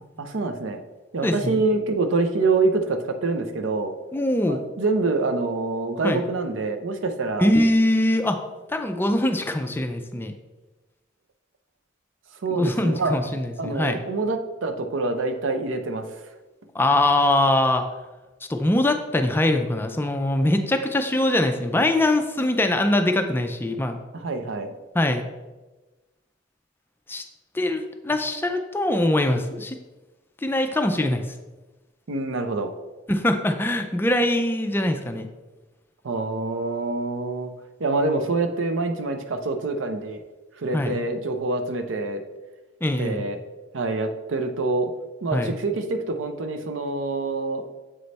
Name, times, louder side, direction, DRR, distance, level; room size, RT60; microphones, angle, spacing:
voice 1, 0.2-0.8 1.1-3.9 4.5-7.5 12.4-13.2 13.6-16.0 24.1-24.7 32.1-32.7 36.0-37.5 37.8-40.2 40.6-42.2 43.0-43.4 43.7-44.9 45.2-47.7, right 3 dB, 85° right, 6 dB, 0.6 m, -26 dB
voice 2, 1.2-1.6 4.1-4.6 6.0-6.2 7.4-8.4 8.7-10.3 12.5-14.0 16.7-17.9 18.5-24.0 24.9-25.3 27.1-27.2 27.5-29.8 30.4-31.3 33.1-35.3 40.7-41.0 42.8-43.2 45.3-45.5, left 1 dB, 10° left, 6 dB, 0.4 m, -22 dB
7.6 x 3.3 x 4.0 m, 1.2 s
head